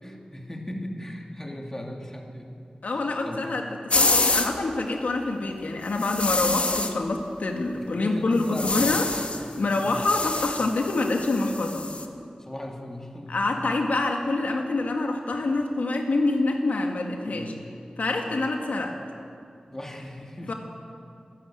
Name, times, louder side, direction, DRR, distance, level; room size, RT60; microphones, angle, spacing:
voice 1, 0.0-2.5 3.3-3.5 7.8-8.9 9.8-10.1 12.4-13.4 17.3-17.7 18.2-18.4 19.7-20.5, left 1 dB, 20° left, 1 dB, 2.8 m, -37 dB
voice 2, 2.8-9.1 9.6-11.9 13.3-17.5 18.0-19.0 20.5-20.6, left 2 dB, 85° left, 2 dB, 2.0 m, -26 dB
sound 1, 3.9-4.5 6.0-6.9 8.4-9.4 9.7-12.0, left 3 dB, 55° left, 1.6 m, -26 dB
25.5 x 12.0 x 9.1 m, 2.5 s
wide cardioid pair, 80°, 3 cm